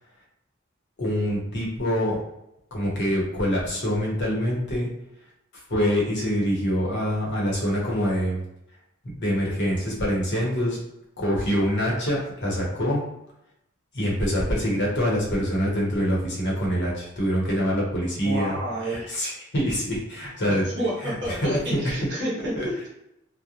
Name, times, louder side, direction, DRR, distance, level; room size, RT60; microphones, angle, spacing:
voice 1, 1.0-2.2 2.7-4.9 5.5-8.4 9.0-10.8 11.2-13.0 13.9-18.6 18.9-20.7 21.0-21.8 22.6-22.7, equal, 60° left, -3 dB, 0.9 m, -25 dB
voice 2, 18.2-19.1 20.5-22.6, right 1 dB, 60° right, -4 dB, 1.1 m, -30 dB
2.4 x 2.1 x 2.8 m, 0.82 s
head